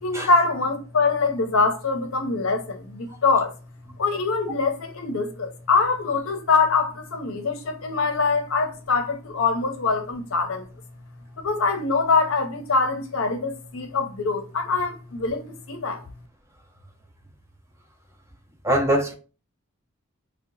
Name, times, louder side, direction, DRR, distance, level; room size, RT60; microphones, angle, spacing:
voice 1, 0.0-3.5 4.0-10.6 11.4-16.0, left 4 dB, 70° left, 0.6 m, -24 dB
voice 2, 18.6-19.1, right 1 dB, 15° right, 0.4 m, -22 dB
2.7 x 2.2 x 3.8 m
head